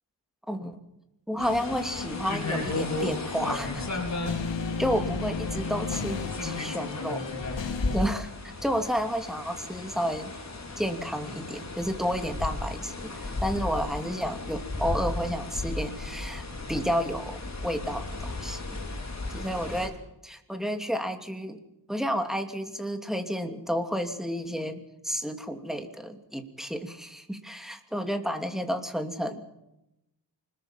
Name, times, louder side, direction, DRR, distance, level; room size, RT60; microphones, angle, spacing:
voice 1, 0.5-0.8 1.3-4.0 4.8-7.3 7.5-8.3 8.6-10.3 10.8-18.8 19.3-19.9 20.2-21.6 21.9-29.4, equal, ahead, 5 dB, 2.7 m, -31 dB
sound 1, 1.4-8.1, left 5 dB, 80° left, 2.0 m, -35 dB
sound 2, 1.4-19.9, left 2 dB, 40° left, 4.8 m, -35 dB
25.5 x 21.0 x 5.8 m, 0.89 s
wide cardioid pair, 115°, 44 cm